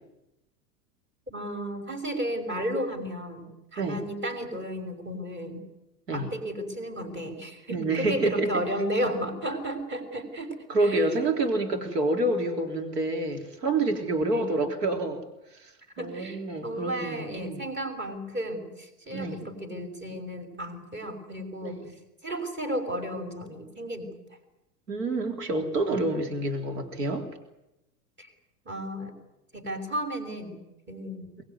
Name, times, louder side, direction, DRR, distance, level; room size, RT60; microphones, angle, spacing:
voice 1, 1.3-5.7 6.1-10.6 10.8-11.0 14.3-14.6 16.0-21.8 22.2-24.2 28.2-28.3 28.7-29.1 29.5-31.3, equal, 25° right, 6 dB, 6.0 m, -33 dB
voice 2, 7.7-8.5 10.7-15.2 15.5-15.7 16.0-17.6 19.1-19.4 21.6-21.9 24.9-27.3, right 2 dB, 85° right, 4 dB, 3.7 m, -28 dB
23.5 x 20.5 x 9.6 m, 0.92 s
hypercardioid pair, 105°, 47 cm